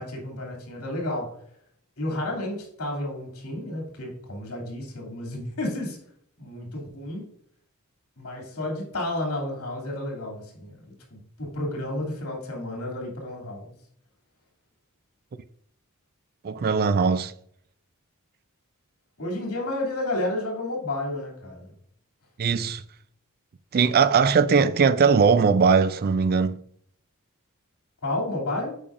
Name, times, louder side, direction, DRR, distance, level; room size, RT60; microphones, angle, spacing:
voice 1, 0.0-1.3 2.0-6.0 6.4-7.3 8.2-13.7 19.2-21.7 28.0-28.7, left 1 dB, 70° left, 2.7 m, -31 dB
voice 2, 16.4-17.3 22.4-22.8 23.7-26.6, right 5 dB, 45° right, 0.4 m, -20 dB
8.5 x 5.6 x 2.5 m
head